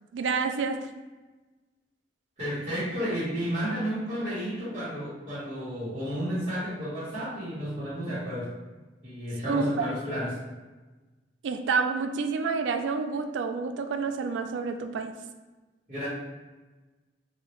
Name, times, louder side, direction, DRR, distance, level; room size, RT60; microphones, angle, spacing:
voice 1, 0.1-0.8 9.5-9.9 11.4-15.1, right 5 dB, 85° right, 7 dB, 0.3 m, -28 dB
voice 2, 2.4-8.5 9.0-10.4 15.9-16.1, equal, 40° right, -14 dB, 1.5 m, -32 dB
3.1 x 2.7 x 2.9 m, 1.2 s
head